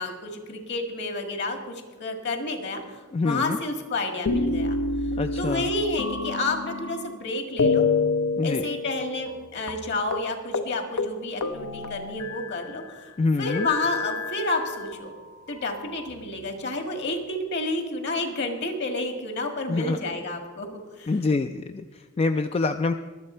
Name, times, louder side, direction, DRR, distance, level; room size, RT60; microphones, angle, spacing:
voice 1, 0.0-4.8 5.4-7.8 8.4-13.1 13.4-15.1 15.5-20.7 21.0-21.1, left 2 dB, 55° left, 5 dB, 1.8 m, -30 dB
voice 2, 3.1-3.6 5.1-5.7 8.4-8.7 13.2-13.7 19.7-20.0 21.1-22.9, left 3 dB, 30° left, 8 dB, 0.3 m, -26 dB
sound 1, 4.3-7.2 7.6-9.4 9.7-9.8 10.1-10.3 10.5-10.7 11.0-12.7 13.5-15.0 15.8-16.7, left 3 dB, 75° left, 0.8 m, -28 dB
22.5 x 7.5 x 4.4 m, 1.4 s
head